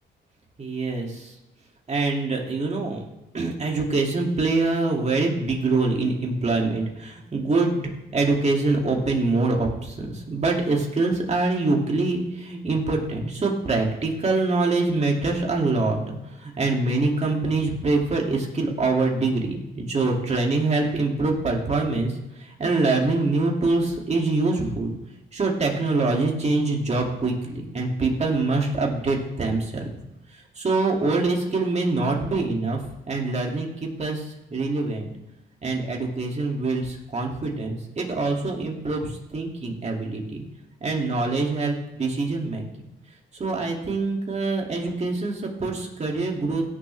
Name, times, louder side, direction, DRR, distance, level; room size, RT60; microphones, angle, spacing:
voice 1, 0.6-1.3 1.9-3.0 3.3-7.8 8.1-22.1 22.4-24.9 25.3-29.8 30.6-32.8 33.1-34.2 34.5-35.1 35.6-40.4 40.8-42.6 43.4-46.6, right 3 dB, 35° right, 0 dB, 2.7 m, -24 dB
17.0 x 7.1 x 3.5 m, 0.96 s
cardioid pair, 90°, 20 cm